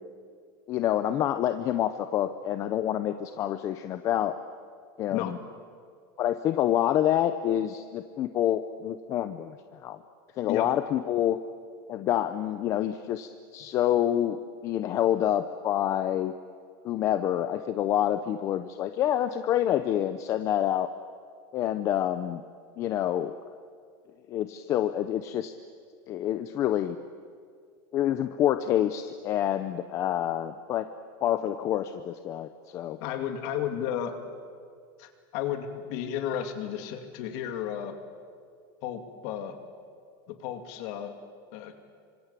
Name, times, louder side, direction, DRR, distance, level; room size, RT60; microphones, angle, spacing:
voice 1, 0.7-4.3 5.0-5.4 6.2-10.0 10.4-11.4 11.9-16.3 16.8-20.9 21.5-22.4 22.8-23.3 24.3-25.5 26.1-27.0 27.9-30.8 31.2-33.0, left 11 dB, 25° left, 10 dB, 0.7 m, -27 dB
voice 2, 33.0-34.2 35.0-38.0 38.8-39.6 40.3-41.1 41.5-41.7, left 10 dB, 40° left, 6 dB, 2.6 m, -33 dB
26.5 x 25.5 x 8.4 m, 2.1 s
supercardioid pair, 180°, 12 cm